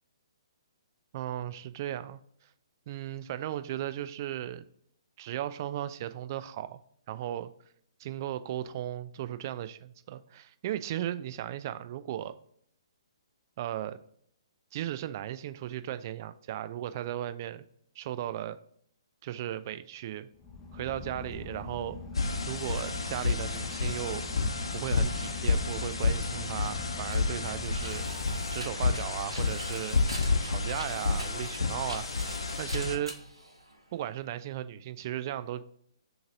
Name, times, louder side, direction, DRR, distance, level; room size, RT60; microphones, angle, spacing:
voice 1, 1.1-2.2 2.9-4.7 5.2-6.8 7.1-7.5 8.0-12.3 13.6-14.0 14.7-17.7 18.0-18.6 19.2-20.3 20.7-22.0 22.5-24.2 24.7-28.0 28.5-30.0 30.4-32.1 32.6-33.2 33.9-35.6, right 12 dB, 40° right, 13 dB, 0.3 m, -36 dB
Boat Water vehicle / Engine, 20.3-29.3, left 3 dB, 10° left, 0.7 m, -42 dB
sound 1, 22.1-33.0, left 4 dB, 70° left, 0.8 m, -30 dB
sound 2, 26.4-34.2, right 1 dB, 85° right, 1.1 m, -45 dB
6.5 x 2.8 x 2.6 m, 0.66 s
figure-of-eight pair, 130°, 3 cm